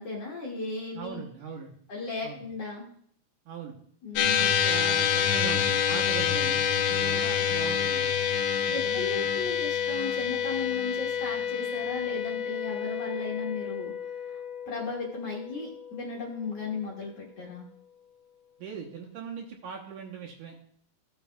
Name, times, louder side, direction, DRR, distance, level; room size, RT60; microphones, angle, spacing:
voice 1, 0.0-1.2 1.9-2.9 4.0-4.5 8.7-13.9 14.3-14.4 14.7-17.7, left 4 dB, 55° left, -3 dB, 2.1 m, -35 dB
voice 2, 0.9-1.7 2.2-2.4 3.5-3.8 4.4-8.2 8.6-9.3 18.6-20.6, right 7 dB, 70° right, -1 dB, 2.2 m, -40 dB
sound 1, 4.2-16.7, left 8 dB, 75° left, 1.9 m, -28 dB
15.5 x 6.9 x 2.3 m, 0.63 s
omnidirectional pair, 4.2 m